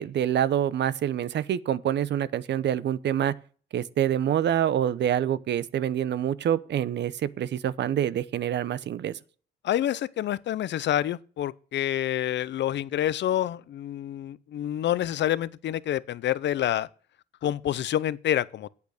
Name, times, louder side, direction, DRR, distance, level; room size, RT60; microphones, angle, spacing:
voice 1, 0.0-3.3 3.7-9.2, right 10 dB, 60° right, 0.7 m, -26 dB
voice 2, 9.6-16.9 17.4-18.7, left 12 dB, 65° left, 0.6 m, -27 dB
8.5 x 8.3 x 6.6 m
cardioid pair, 90°, 20 cm